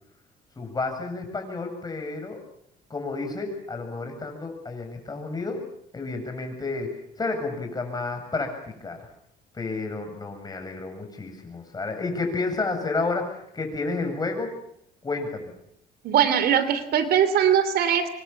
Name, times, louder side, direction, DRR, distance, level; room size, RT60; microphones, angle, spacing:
voice 1, 0.6-2.4 2.9-5.6 5.9-9.0 9.5-14.5 15.0-15.5, left 3 dB, 25° left, 5 dB, 7.9 m, -31 dB
voice 2, 16.0-18.1, right 8 dB, 70° right, 13 dB, 3.1 m, -21 dB
26.0 x 24.0 x 7.4 m, 0.75 s
cardioid pair, 110°, 17 cm